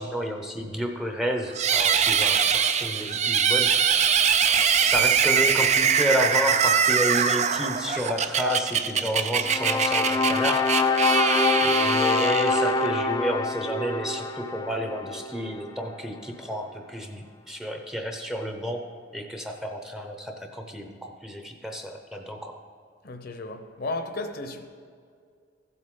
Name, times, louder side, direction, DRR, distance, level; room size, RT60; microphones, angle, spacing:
voice 1, 0.0-3.7 4.9-10.7 11.6-18.9 19.1-22.6, equal, 5° right, 0.8 m, -30 dB
sound 1, 1.5-12.9, right 7 dB, 40° right, 0.4 m, -23 dB
sound 2, 9.4-15.7, left 3 dB, 20° left, 0.4 m, -25 dB
voice 2, 23.0-24.6, left 2 dB, 55° left, 0.8 m, -34 dB
14.5 x 7.8 x 3.8 m
head